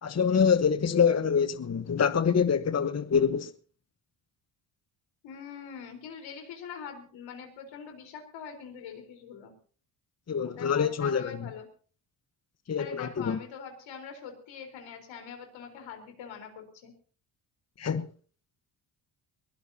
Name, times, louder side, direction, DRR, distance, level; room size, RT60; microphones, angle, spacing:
voice 1, 0.0-3.5 10.3-11.3 12.7-13.4 17.8-18.1, left 6 dB, 35° left, 1.1 m, -25 dB
voice 2, 5.2-9.5 10.4-11.7 12.8-16.9, left 6 dB, 80° left, 4.3 m, -43 dB
22.5 x 17.0 x 2.8 m
supercardioid pair, 70°, 45 cm